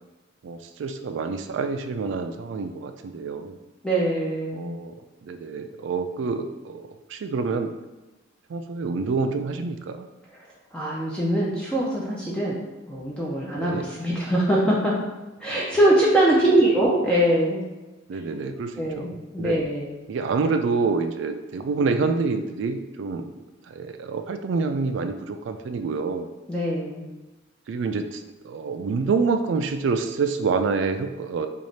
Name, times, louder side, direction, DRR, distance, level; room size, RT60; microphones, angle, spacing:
voice 1, 0.4-3.6 4.5-4.9 5.2-7.7 8.5-10.1 13.6-13.9 15.5-15.8 18.1-19.5 20.1-23.3 23.7-26.3 27.7-31.5, right 4 dB, 65° right, 8 dB, 0.3 m, -27 dB
voice 2, 3.8-4.7 10.7-12.6 12.9-14.9 15.4-17.6 18.8-20.0 26.5-27.1, right 1 dB, 5° left, -5 dB, 0.4 m, -22 dB
3.1 x 2.4 x 4.0 m, 1.1 s
head